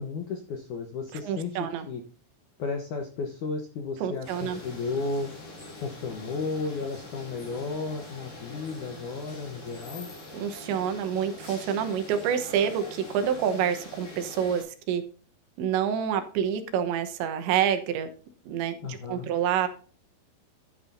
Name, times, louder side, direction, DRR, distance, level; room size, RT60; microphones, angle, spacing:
voice 1, 0.0-1.5 1.8-2.0 2.6-5.3 5.8-10.1 18.8-19.3, left 4 dB, 75° left, 4 dB, 1.8 m, -33 dB
voice 2, 1.2-1.9 4.0-4.6 10.3-15.0 15.6-18.1 18.5-18.8 19.1-19.7, right 8 dB, 85° right, 8 dB, 3.4 m, -27 dB
sound 1, 4.2-14.6, left 2 dB, 55° left, 7.3 m, -44 dB
12.5 x 9.5 x 2.7 m, 0.40 s
omnidirectional pair, 5.2 m